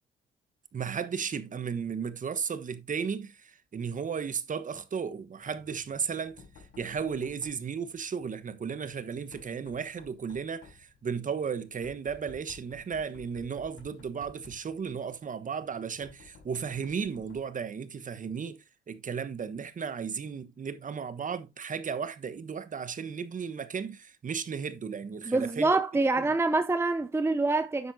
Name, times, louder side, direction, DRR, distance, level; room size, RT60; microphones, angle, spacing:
voice 1, 0.7-6.4 6.8-25.7 26.2-26.3, right 6 dB, 40° right, 1.2 m, -35 dB
Knock, 5.4-17.6, left 5 dB, 80° left, 4.3 m, -56 dB
voice 2, 25.3-27.9, right 3 dB, 10° right, 0.6 m, -26 dB
9.7 x 7.4 x 2.7 m
cardioid pair, 90°, 20 cm